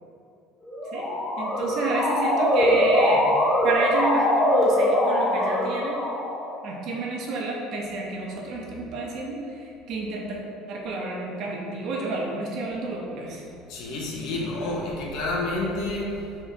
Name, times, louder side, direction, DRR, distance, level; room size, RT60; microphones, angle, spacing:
Motor vehicle (road) / Siren, 0.7-6.5, left 1 dB, 30° left, 1.2 m, -22 dB
voice 1, 1.4-3.3 3.6-6.0 6.6-10.4 10.7-13.4, right 2 dB, 60° right, -1 dB, 0.8 m, -30 dB
voice 2, 13.7-16.4, left 2 dB, 70° left, -2 dB, 0.9 m, -29 dB
3.7 x 2.7 x 4.5 m, 2.6 s
supercardioid pair, 80°, 0 cm